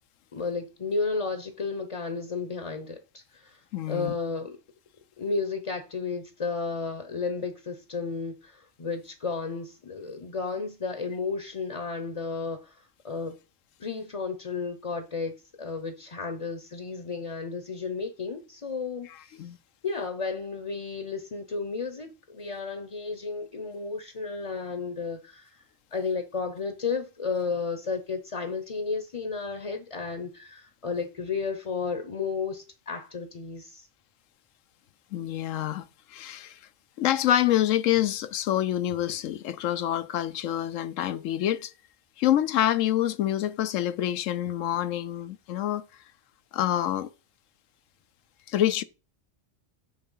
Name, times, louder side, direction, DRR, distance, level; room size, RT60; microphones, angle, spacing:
voice 1, 0.3-3.6 3.9-4.6 5.2-13.4 13.8-19.4 19.8-25.6 25.9-33.9, left 4 dB, 35° left, 0.8 m, -33 dB
voice 2, 3.7-4.1 19.4-19.6 35.1-36.6 37.0-41.7 42.2-45.9 46.5-47.1 48.5-48.8, left 12 dB, 85° left, 1.0 m, -26 dB
9.1 x 3.4 x 5.5 m
omnidirectional pair, 1.3 m